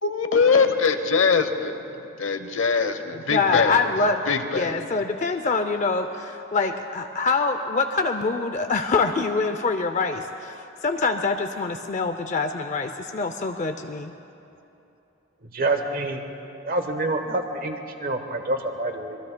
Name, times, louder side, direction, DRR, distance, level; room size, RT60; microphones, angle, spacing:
voice 1, 0.0-1.7 2.2-3.8 4.3-4.9, left 5 dB, 75° left, 9 dB, 0.8 m, -22 dB
voice 2, 3.3-4.2 4.5-10.5 10.8-14.1, left 4 dB, 35° left, 7 dB, 0.4 m, -25 dB
voice 3, 15.5-16.2 16.6-19.2, right 2 dB, 45° right, 5 dB, 1.0 m, -27 dB
25.0 x 20.5 x 2.2 m, 2.9 s
head